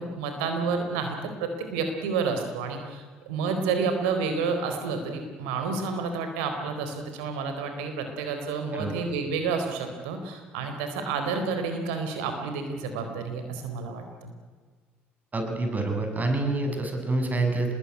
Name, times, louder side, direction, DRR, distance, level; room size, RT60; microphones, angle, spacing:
voice 1, 0.0-14.3, right 4 dB, 75° right, 6 dB, 4.2 m, -30 dB
voice 2, 15.3-17.8, right 2 dB, 30° right, 4 dB, 7.2 m, -27 dB
26.0 x 21.0 x 9.9 m, 1.5 s
hypercardioid pair, 55°, 6 cm